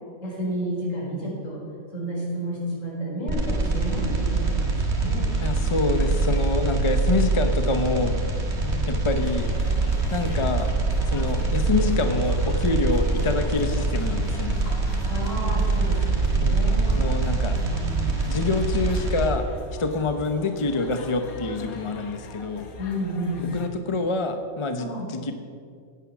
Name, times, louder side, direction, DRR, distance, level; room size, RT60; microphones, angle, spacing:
voice 1, 0.2-1.6 1.9-5.3 8.5-9.0 14.6-14.7 15.1-16.8 17.6-18.2 22.8-23.5 24.8-25.1, right 1 dB, 60° left, -4 dB, 4.8 m, -31 dB
sound 1, 3.3-19.3, right 3 dB, 50° right, 2.1 m, -24 dB
voice 2, 5.4-8.2 8.9-9.5 10.1-10.7 11.1-14.7 16.4-16.6 16.9-17.6 18.3-19.5 19.8-22.7 23.5-25.3, left 3 dB, 25° left, 7 dB, 0.7 m, -26 dB
sound 2, 9.2-23.7, left 3 dB, 85° left, 1.7 m, -42 dB
16.0 x 9.8 x 6.1 m, 2.2 s
omnidirectional pair, 1.5 m